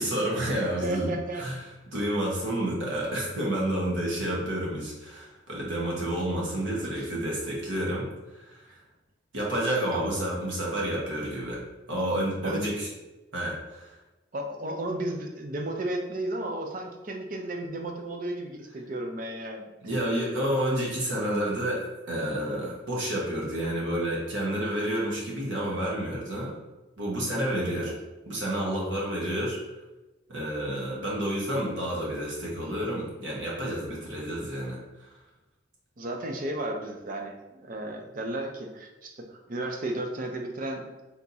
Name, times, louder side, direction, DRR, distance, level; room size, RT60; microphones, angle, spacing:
voice 1, 0.0-1.6 1.9-8.1 8.5-8.6 9.3-11.6 11.9-12.9 13.3-13.9 19.8-26.5 27.0-27.9 28.3-29.6 30.3-34.8, right 1 dB, 85° right, -4 dB, 1.3 m, -29 dB
voice 2, 0.8-1.4 6.8-7.1 9.9-10.1 12.0-12.1 12.4-12.7 14.3-19.6 27.6-27.9 36.0-40.8, right 1 dB, 45° right, 3 dB, 0.6 m, -34 dB
3.5 x 2.9 x 4.0 m, 1.1 s
head